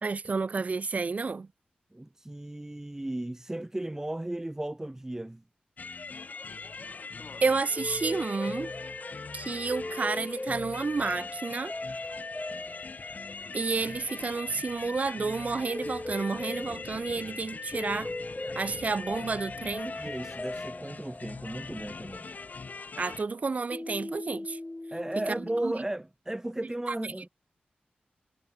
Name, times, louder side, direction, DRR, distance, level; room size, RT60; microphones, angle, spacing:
voice 1, 0.0-1.5 7.4-8.7 9.3-11.7 13.5-18.1 18.6-19.9 23.0-24.6 25.2-25.7, right 4 dB, 50° right, 0.7 m, -30 dB
voice 2, 1.9-5.4 20.0-22.3 24.9-27.3, right 1 dB, 15° right, 1.4 m, -35 dB
sound 1, 5.8-23.2, left 4 dB, 55° left, 2.5 m, -42 dB
sound 2, 7.7-23.4 23.7-25.6, left 2 dB, 20° left, 1.6 m, -40 dB
wide cardioid pair, 75°, 3 cm